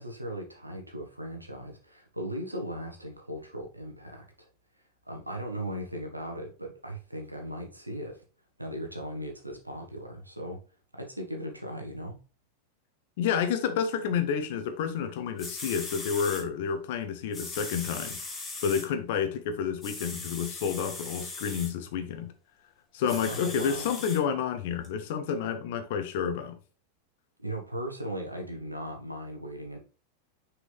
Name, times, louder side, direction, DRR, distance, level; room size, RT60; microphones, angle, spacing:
voice 1, 0.0-4.5 5.1-8.2 8.6-10.6 10.9-12.2 23.1-23.8 27.4-29.8, equal, 85° right, 1.4 m, -38 dB
voice 2, 13.2-18.2 18.6-22.3 22.9-26.6, left 7 dB, 50° left, 1.1 m, -30 dB
sound 1, 15.1-15.2 15.4-16.4 17.3-18.9 19.8-21.7 23.1-24.2 24.8-24.9, left 3 dB, 20° left, 1.9 m, -39 dB
6.4 x 4.8 x 3.4 m
figure-of-eight pair, 90°, 0 cm